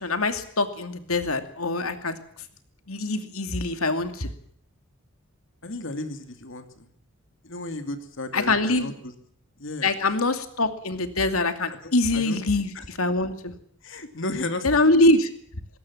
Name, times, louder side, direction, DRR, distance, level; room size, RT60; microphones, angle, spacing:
voice 1, 0.0-2.2 2.9-4.3 8.3-8.9 9.8-13.5 14.6-15.3, left 2 dB, 75° left, 9 dB, 2.5 m, -24 dB
voice 2, 5.6-6.9 7.4-9.1 9.6-9.9 11.7-12.4 12.7-12.9 13.8-14.7, left 2 dB, 60° left, 8 dB, 2.7 m, -34 dB
20.5 x 18.0 x 7.3 m, 0.62 s
head